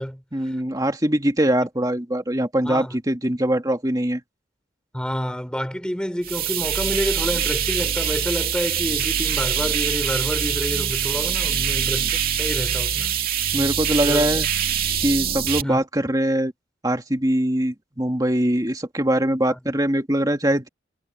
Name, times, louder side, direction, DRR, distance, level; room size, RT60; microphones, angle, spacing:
voice 1, 0.3-4.2 11.4-11.7 13.5-14.5 15.0-16.5 16.8-20.7, right 1 dB, 20° right, 2.1 m, -22 dB
voice 2, 4.9-13.1 14.0-14.3 15.6-15.8 19.5-19.6, equal, 5° left, 4.7 m, -28 dB
sound 1, 6.2-15.6, right 8 dB, 50° right, 2.8 m, -24 dB
head